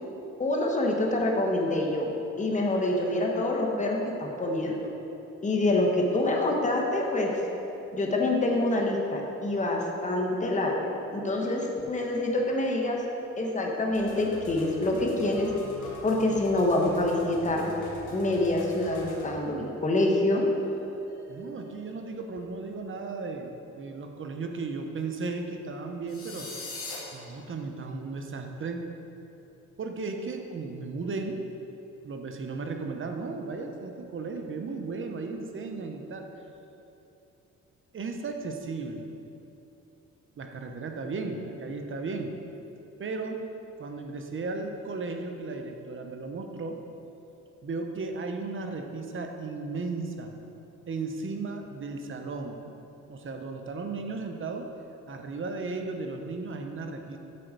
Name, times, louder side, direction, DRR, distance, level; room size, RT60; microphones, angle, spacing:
voice 1, 0.4-2.1 2.4-4.9 5.4-7.3 7.9-13.0 13.4-15.5 16.0-17.7 18.1-20.4, left 2 dB, 25° left, 0 dB, 1.3 m, -26 dB
sound 1, 13.9-22.4, left 3 dB, 80° left, 1.6 m, -43 dB
voice 2, 21.3-26.5 27.1-28.8 29.8-31.4 32.0-36.3 37.9-39.1 40.4-42.3 43.0-43.4 43.8-46.8 47.6-50.4 50.9-52.8 53.1-54.7 55.1-57.2, right 3 dB, 40° right, 4 dB, 0.9 m, -35 dB
sound 2, 26.1-27.0, left 3 dB, 50° left, 2.1 m, -38 dB
8.6 x 4.4 x 6.7 m, 2.9 s
cardioid pair, 90°, 30 cm